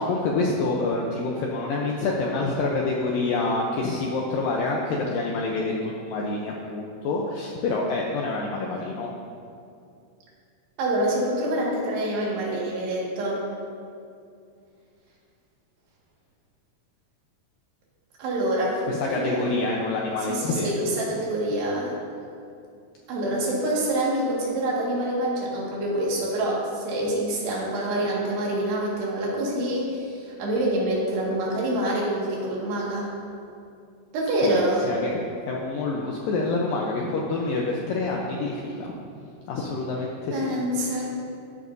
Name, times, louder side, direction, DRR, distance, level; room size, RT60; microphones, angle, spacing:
voice 1, 0.0-9.1 18.9-20.7 34.5-38.9 39.5-40.5 40.9-41.1, left 3 dB, 80° left, -2 dB, 2.0 m, -27 dB
voice 2, 10.8-13.4 18.2-18.8 19.1-19.5 20.3-22.0 23.1-33.1 34.1-34.9 40.3-41.1, right 1 dB, 75° right, -5 dB, 3.9 m, -26 dB
13.5 x 10.5 x 2.7 m, 2.4 s
omnidirectional pair, 4.9 m